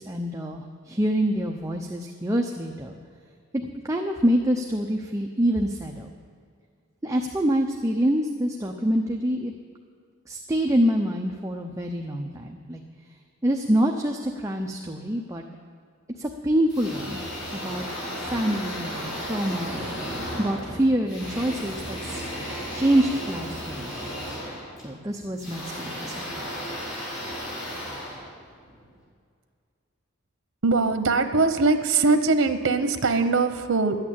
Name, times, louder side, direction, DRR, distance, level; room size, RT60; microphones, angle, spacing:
voice 1, 0.0-3.0 3.5-6.1 7.0-9.5 10.3-12.8 13.4-15.5 16.2-17.2 17.5-17.9 18.2-19.7 20.4-22.2 22.7-24.1 24.8-26.5, equal, 15° right, 1 dB, 0.6 m, -26 dB
sound 1, 16.7-28.9, equal, 55° left, 4.7 m, -34 dB
voice 2, 30.6-34.0, right 3 dB, 85° right, 9 dB, 0.9 m, -21 dB
12.5 x 8.8 x 8.6 m, 2.1 s
head